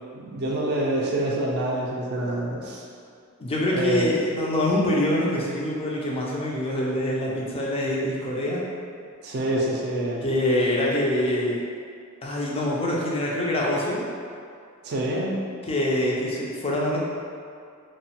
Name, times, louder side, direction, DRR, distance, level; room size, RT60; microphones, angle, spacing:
voice 1, 0.1-2.8 3.7-4.1 9.2-10.2 10.8-10.9 14.8-15.4, right 1 dB, 50° right, -3 dB, 0.4 m, -26 dB
voice 2, 3.4-8.6 10.2-11.6 12.2-14.0 15.7-17.0, left 1 dB, 25° left, -4 dB, 0.4 m, -25 dB
2.9 x 2.1 x 2.8 m, 2.3 s
head